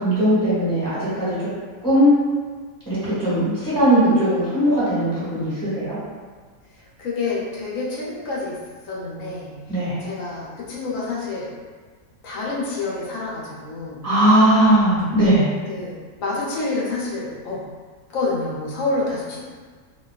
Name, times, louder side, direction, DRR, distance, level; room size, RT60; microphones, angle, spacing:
voice 1, 0.0-1.4 1.8-2.1 2.8-6.0 9.7-10.0 14.0-15.4, right 1 dB, 5° left, -12 dB, 1.2 m, -18 dB
voice 2, 7.0-8.6 8.9-9.5 10.0-11.5 12.2-14.0 15.7-17.6 18.1-19.4, left 3 dB, 70° left, -5 dB, 1.0 m, -28 dB
2.5 x 2.2 x 2.2 m, 1.5 s
omnidirectional pair, 1.5 m